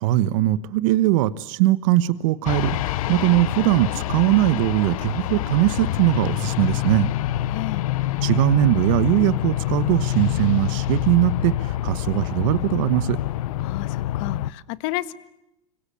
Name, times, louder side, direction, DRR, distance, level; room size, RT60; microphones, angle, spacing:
voice 1, 0.0-7.1 8.2-13.2, right 15 dB, 65° right, 16 dB, 1.3 m, -20 dB
sound 1, 2.5-14.5, left 14 dB, 80° left, 0.9 m, -26 dB
voice 2, 7.5-7.9 13.6-15.1, left 17 dB, 60° left, 15 dB, 1.6 m, -31 dB
26.0 x 23.5 x 8.5 m, 0.88 s
supercardioid pair, 125°, 18 cm